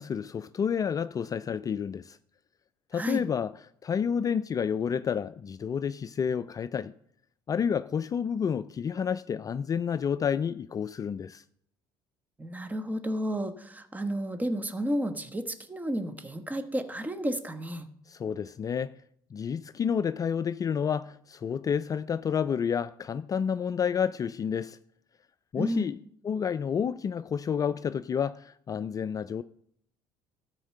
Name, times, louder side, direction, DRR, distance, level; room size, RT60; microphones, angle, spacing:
voice 1, 0.0-2.2 2.9-3.5 3.8-6.9 7.5-11.4 18.1-18.9 19.3-24.8 25.5-26.0 26.2-29.4, left 7 dB, 35° left, 0.4 m, -30 dB
voice 2, 2.9-3.3 12.4-17.9 25.6-25.9, equal, 15° right, 1.2 m, -32 dB
13.0 x 4.5 x 6.5 m
hypercardioid pair, 70°, 11 cm